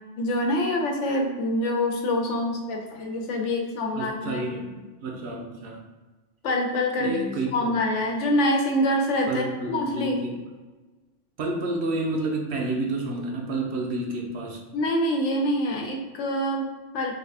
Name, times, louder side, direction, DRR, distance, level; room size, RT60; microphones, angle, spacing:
voice 1, 0.2-4.4 6.4-7.2 7.5-10.2 14.7-17.1, left 1 dB, 75° left, 2 dB, 0.9 m, -25 dB
voice 2, 3.9-5.8 7.0-7.7 9.3-10.4 11.4-14.6, right 2 dB, 65° right, 0 dB, 0.8 m, -29 dB
3.3 x 2.3 x 3.3 m, 1.2 s
omnidirectional pair, 1.3 m